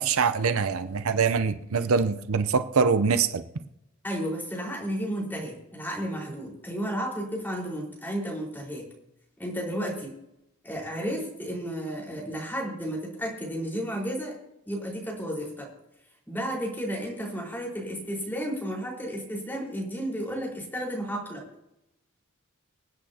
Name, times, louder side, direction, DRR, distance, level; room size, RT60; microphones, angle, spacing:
voice 1, 0.0-3.4, right 5 dB, 80° right, 10 dB, 0.7 m, -24 dB
voice 2, 4.0-8.8 9.4-10.2 10.6-14.3 14.6-15.7 16.3-21.4, equal, 10° left, -3 dB, 4.7 m, -32 dB
25.5 x 8.6 x 2.9 m, 0.85 s
head